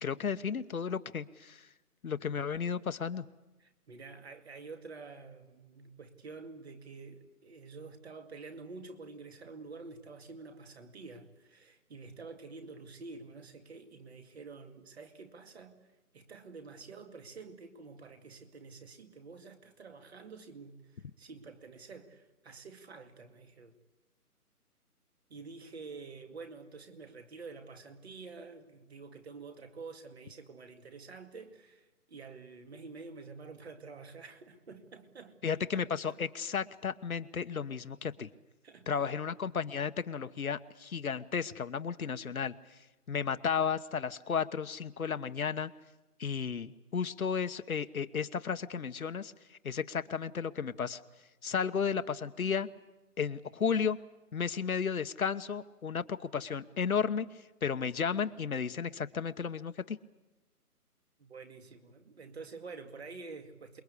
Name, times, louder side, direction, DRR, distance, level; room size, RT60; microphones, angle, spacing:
voice 1, 0.0-1.7 2.0-3.3 35.4-38.3 38.9-42.8 43.1-45.7 46.2-51.0 51.4-52.7 53.2-54.0 54.3-60.0, left 6 dB, 65° left, 1.2 m, -33 dB
voice 2, 3.6-15.8 16.1-23.7 25.3-36.2 38.6-39.2 61.2-63.8, right 4 dB, 45° right, 2.4 m, -48 dB
28.0 x 21.5 x 8.4 m
hypercardioid pair, 165°, 46 cm